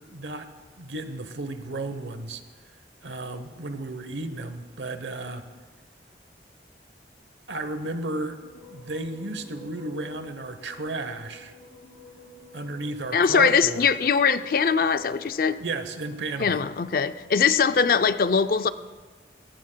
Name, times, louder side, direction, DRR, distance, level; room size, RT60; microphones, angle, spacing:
voice 1, 0.1-0.5 0.8-2.4 3.0-5.5 7.5-8.4 8.7-11.5 12.5-13.9 15.6-16.6, right 2 dB, 85° right, 9 dB, 1.0 m, -33 dB
sound 1, 8.0-17.4, equal, 80° left, 2.3 m, -49 dB
voice 2, 13.1-15.6 16.4-18.7, left 6 dB, 50° left, 12 dB, 0.4 m, -21 dB
22.0 x 16.5 x 2.3 m, 1.4 s
head